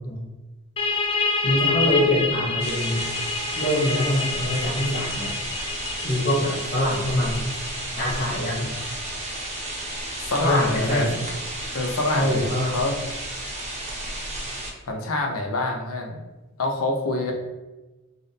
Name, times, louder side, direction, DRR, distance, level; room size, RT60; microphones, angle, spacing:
sound 1, 0.8-12.1, left 4 dB, 25° left, 0.3 m, -30 dB
voice 1, 1.4-3.0 3.6-5.3 6.0-7.4 8.0-8.7 10.4-11.1 12.1-12.8, left 1 dB, 50° left, -5 dB, 1.0 m, -24 dB
sound 2, 2.6-14.7, right 1 dB, 30° right, 0.7 m, -33 dB
voice 2, 10.2-11.2 11.7-13.0 14.9-16.2 16.6-17.3, left 2 dB, 80° left, 2 dB, 0.7 m, -26 dB
3.4 x 2.6 x 4.1 m, 1.1 s
head